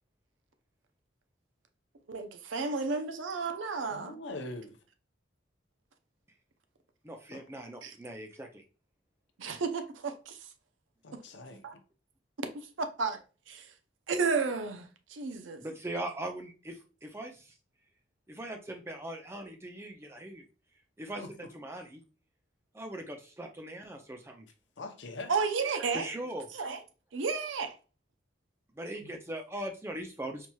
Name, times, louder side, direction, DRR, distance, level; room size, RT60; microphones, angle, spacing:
voice 1, 2.1-4.2 7.8-8.0 9.4-10.5 11.6-11.7 12.5-13.2 13.5-13.7 14.1-15.6 25.3-26.1 26.5-26.8 27.1-27.8 29.0-29.1, right 4 dB, 80° right, 0.5 m, -32 dB
voice 2, 3.9-4.8 7.3-7.4 11.0-11.8 21.2-21.3 24.8-25.3, left 2 dB, 65° left, 0.6 m, -42 dB
voice 3, 7.0-8.6 15.6-17.5 18.3-20.4 21.0-21.2 21.5-22.0 22.7-24.5 25.9-26.5 28.8-30.5, right 1 dB, 15° right, 0.5 m, -40 dB
4.5 x 2.9 x 2.3 m
head